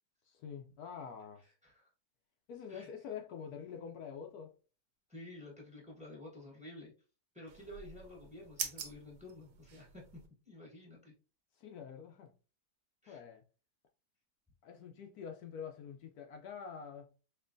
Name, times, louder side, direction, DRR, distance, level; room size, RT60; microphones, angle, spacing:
voice 1, 0.3-1.5 2.5-4.5 11.5-12.3 13.1-13.4 14.6-17.1, left 7 dB, 75° left, 1.0 m, -46 dB
voice 2, 5.1-6.9 7.3-10.0 10.5-11.1 13.0-13.2, left 1 dB, 5° right, 1.1 m, -51 dB
sound 1, 7.5-10.3, right 7 dB, 85° right, 1.3 m, -45 dB
4.4 x 3.0 x 2.5 m
omnidirectional pair, 1.8 m